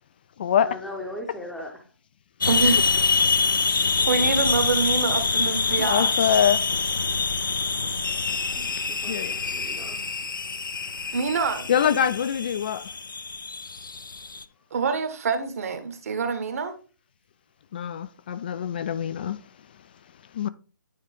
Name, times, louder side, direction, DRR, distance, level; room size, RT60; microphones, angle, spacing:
voice 1, 0.6-1.9 4.0-4.3 8.5-10.1, left 1 dB, ahead, 0.8 m, -39 dB
sound 1, 2.4-14.4, left 4 dB, 85° left, 0.6 m, -25 dB
voice 2, 2.5-3.1 4.1-6.4 11.1-11.7 14.7-16.7, right 5 dB, 45° right, 1.3 m, -26 dB
voice 3, 5.8-6.6 9.1-9.3 11.7-12.8 17.7-19.4 20.4-20.5, left 9 dB, 30° left, 0.3 m, -24 dB
9.3 x 3.7 x 3.5 m
figure-of-eight pair, 155°, 11 cm